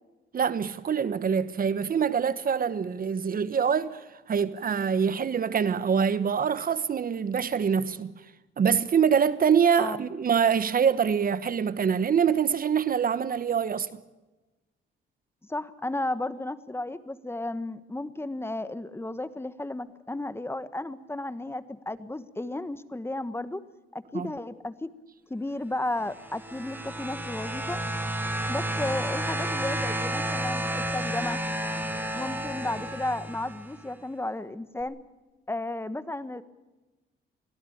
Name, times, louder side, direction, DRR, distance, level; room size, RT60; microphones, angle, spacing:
voice 1, 0.3-8.1 8.6-14.0 24.1-24.3, right 7 dB, 45° right, 1.2 m, -25 dB
voice 2, 15.5-23.6 23.9-24.9 25.3-27.8 28.5-31.4 32.1-35.0 35.5-36.4, left 2 dB, 10° left, 1.3 m, -33 dB
sound 1, 26.0-33.7 34.8-34.9, right 1 dB, 10° right, 4.7 m, -31 dB
24.0 x 17.0 x 8.7 m
cardioid pair, 90°, 20 cm